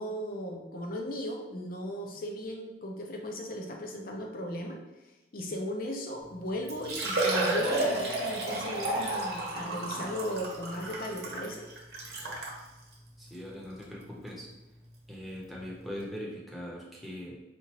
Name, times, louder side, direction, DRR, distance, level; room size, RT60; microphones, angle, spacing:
voice 1, 0.0-4.8 5.3-11.7, left 1 dB, 50° left, 1 dB, 0.6 m, -36 dB
Liquid, 6.2-6.3 6.7-12.6 13.3-13.4 13.8-13.9 15.6-15.7 15.8-15.9, right 2 dB, 60° right, 0.9 m, -32 dB
voice 2, 13.2-14.5 15.1-17.4, equal, ahead, -4 dB, 0.7 m, -41 dB
4.3 x 2.5 x 2.9 m, 1.1 s
head